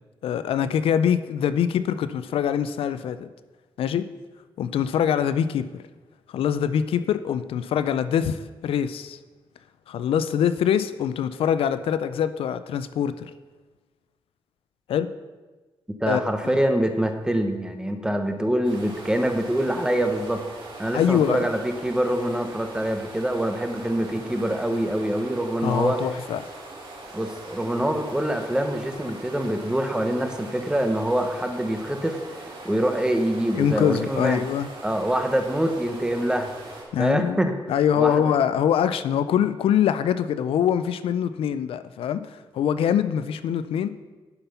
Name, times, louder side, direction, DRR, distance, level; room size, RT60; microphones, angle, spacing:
voice 1, 0.2-3.3 3.8-4.1 4.6-5.8 6.3-9.2 9.9-13.3 14.9-15.1 16.1-16.6 20.9-21.5 25.6-26.4 33.5-34.7 36.9-43.9, left 9 dB, 90° left, 13 dB, 0.4 m, -24 dB
voice 2, 16.0-20.4 20.8-26.0 27.1-34.4 34.8-36.5 37.0-37.5 37.9-38.4, right 1 dB, 10° right, 6 dB, 1.0 m, -25 dB
sound 1, 18.6-36.8, right 2 dB, 60° right, 3.1 m, -41 dB
10.5 x 5.9 x 5.6 m, 1.3 s
cardioid pair, 105°, 9 cm